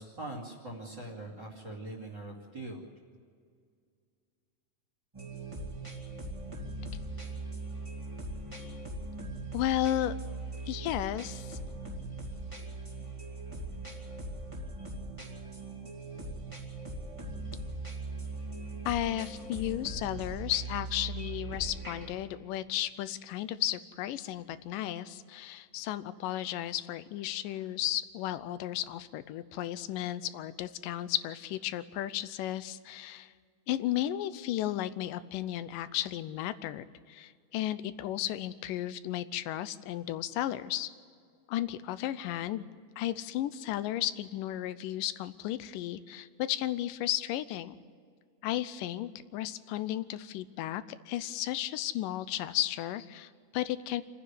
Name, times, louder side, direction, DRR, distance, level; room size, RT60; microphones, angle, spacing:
voice 1, 0.0-2.8, right 2 dB, 35° right, 0 dB, 2.9 m, -42 dB
sound 1, 5.1-22.1, right 2 dB, 10° right, 2.1 m, -40 dB
voice 2, 9.5-10.2 10.7-11.6 18.9-33.3 33.7-40.9 41.5-42.7 43.0-47.8 48.4-54.0, left 13 dB, 90° left, 14 dB, 2.3 m, -34 dB
27.5 x 9.9 x 9.6 m, 2.1 s
omnidirectional pair, 3.8 m